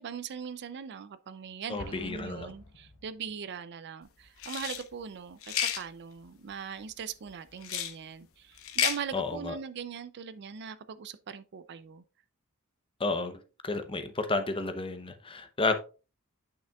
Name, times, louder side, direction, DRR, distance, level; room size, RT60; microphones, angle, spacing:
voice 1, 0.0-12.0, right 7 dB, 50° right, 0.4 m, -40 dB
voice 2, 1.7-2.5 9.1-9.5 13.0-13.4 13.6-15.8, left 3 dB, 25° left, 0.7 m, -31 dB
Explosion, 1.8-3.6, left 2 dB, 85° left, 1.1 m, -49 dB
sound 1, 4.4-4.8 5.4-5.8 7.6-7.9 8.6-9.0, left 9 dB, 65° left, 0.9 m, -30 dB
9.2 x 5.7 x 2.3 m
head